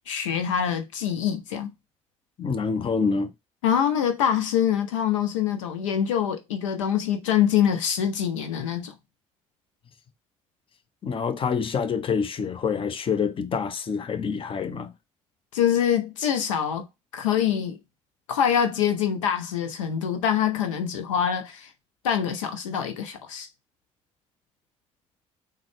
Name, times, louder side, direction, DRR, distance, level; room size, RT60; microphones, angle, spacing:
voice 1, 0.1-1.7 3.6-8.9 15.5-16.9 17.1-17.8 18.3-21.7 22.0-23.5, left 9 dB, 75° left, 0.5 m, -25 dB
voice 2, 2.4-3.3 11.0-14.9, left 5 dB, 35° left, 0.6 m, -26 dB
3.7 x 2.2 x 3.3 m
figure-of-eight pair, 50°, 16 cm